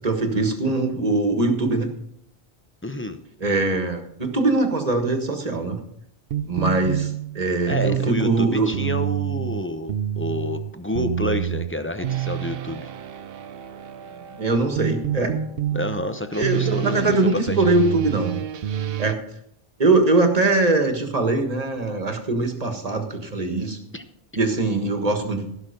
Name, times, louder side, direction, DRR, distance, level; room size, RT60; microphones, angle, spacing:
voice 1, 0.0-1.9 3.4-5.8 6.4-8.7 14.1-15.3 16.4-18.4 19.0-19.2 19.8-23.8 24.3-25.5, right 3 dB, 40° right, 5 dB, 1.6 m, -22 dB
voice 2, 2.8-3.2 7.7-12.9 15.7-17.8 23.9-24.0, left 1 dB, 15° left, 8 dB, 0.7 m, -28 dB
sound 1, 6.3-19.1, right 11 dB, 70° right, 0.8 m, -28 dB
16.0 x 6.1 x 5.2 m, 0.74 s
omnidirectional pair, 1.0 m